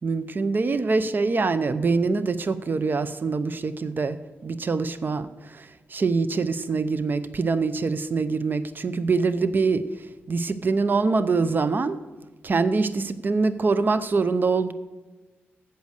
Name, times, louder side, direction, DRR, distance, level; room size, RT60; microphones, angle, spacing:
voice 1, 0.0-4.2 4.4-9.8 10.3-12.0 12.4-14.7, right 4 dB, 45° right, 13 dB, 0.7 m, -24 dB
8.3 x 7.8 x 6.5 m, 1.2 s
cardioid pair, 80°, 4 cm